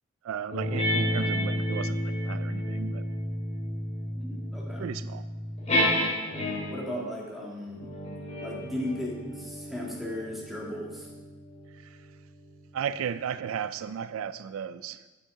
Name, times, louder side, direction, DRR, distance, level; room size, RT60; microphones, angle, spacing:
voice 1, 0.2-2.0 2.3-3.0 4.8-5.2 12.7-15.0, right 8 dB, 80° right, 14 dB, 0.3 m, -34 dB
sound 1, 0.5-6.9 7.7-12.6, left 1 dB, 35° left, 3.2 m, -31 dB
voice 2, 4.1-4.9 6.7-7.9 8.4-11.1, left 1 dB, ahead, -4 dB, 1.9 m, -36 dB
9.3 x 8.4 x 3.7 m, 1.2 s
head